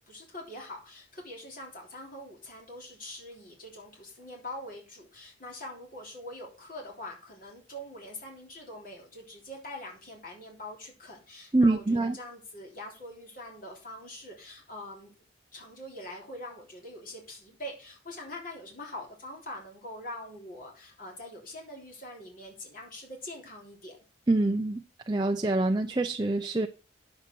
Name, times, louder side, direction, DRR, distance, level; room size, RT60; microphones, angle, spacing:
voice 1, 0.0-15.1 15.5-24.0, left 1 dB, 45° left, 3.3 m, -43 dB
voice 2, 11.5-12.2 24.3-24.8 25.1-26.7, right 2 dB, 20° right, 0.5 m, -25 dB
9.4 x 7.4 x 4.6 m
head